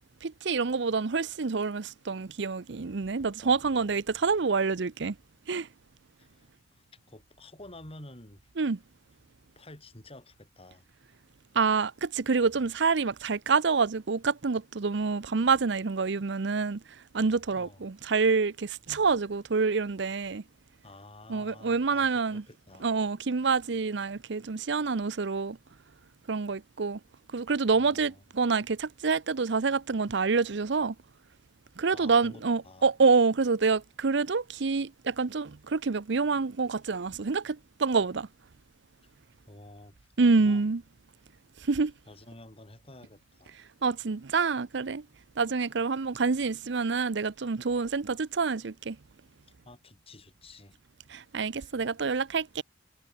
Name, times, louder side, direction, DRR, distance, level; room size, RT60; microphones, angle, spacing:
voice 1, 0.2-5.1 5.5-5.7 8.6-8.8 11.5-16.8 17.1-20.4 21.3-22.4 22.8-25.6 26.3-27.0 27.3-30.9 31.8-38.3 40.2-40.8 41.7-41.9 43.8-45.0 45.4-49.0 51.1-52.6, right 4 dB, 70° right, 0.7 m, -27 dB
voice 2, 3.4-4.3 6.2-8.4 9.6-10.8 17.5-17.8 20.8-22.9 27.8-28.2 31.9-32.9 39.0-39.1 39.5-40.1 40.4-40.7 42.1-43.6 45.4-45.5 49.7-50.8 51.6-51.7, left 2 dB, 30° left, 5.9 m, -51 dB
head